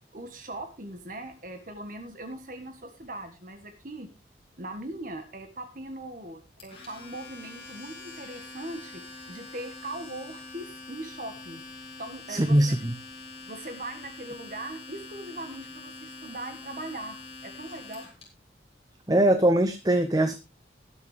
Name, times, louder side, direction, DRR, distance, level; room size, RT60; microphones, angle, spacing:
voice 1, 0.1-4.1 4.6-11.6 12.0-12.8 13.4-17.2 17.4-18.1, right 1 dB, 45° right, 6 dB, 1.5 m, -40 dB
Domestic sounds home sounds, 6.6-18.2, left 3 dB, 35° left, 5.4 m, -44 dB
voice 2, 12.3-12.9 19.1-20.3, right 1 dB, 20° right, 9 dB, 0.7 m, -21 dB
21.0 x 7.2 x 3.3 m, 0.26 s
head